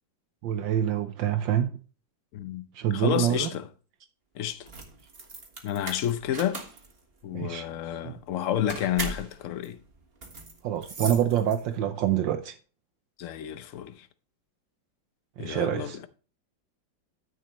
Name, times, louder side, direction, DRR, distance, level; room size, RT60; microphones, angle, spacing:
voice 1, 0.4-1.8 2.7-3.5 7.3-7.6 8.0-8.1 10.6-12.5 15.4-16.1, right 10 dB, 75° right, 1.4 m, -26 dB
voice 2, 2.3-2.6 2.9-3.7 4.3-4.7 5.6-6.7 7.2-9.8 13.2-14.1 15.4-16.0, left 11 dB, 65° left, 0.8 m, -30 dB
sound 1, 4.5-11.9, right 3 dB, 35° right, 1.6 m, -39 dB
12.5 x 6.8 x 3.0 m
omnidirectional pair, 2.1 m